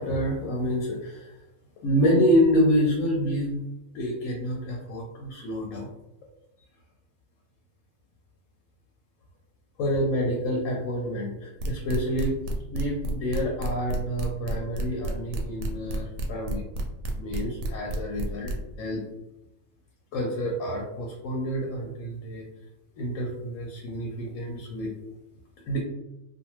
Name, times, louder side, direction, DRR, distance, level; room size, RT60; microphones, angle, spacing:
voice 1, 0.0-1.3 1.8-3.6 3.9-5.9 9.8-12.4 12.7-16.6 17.2-19.0 20.1-22.5 23.0-24.9 25.7-25.8, equal, 90° left, -1 dB, 1.0 m, -27 dB
sound 1, 11.6-18.5, right 1 dB, 70° right, 0.8 m, -30 dB
2.6 x 2.2 x 2.9 m, 0.92 s
omnidirectional pair, 1.3 m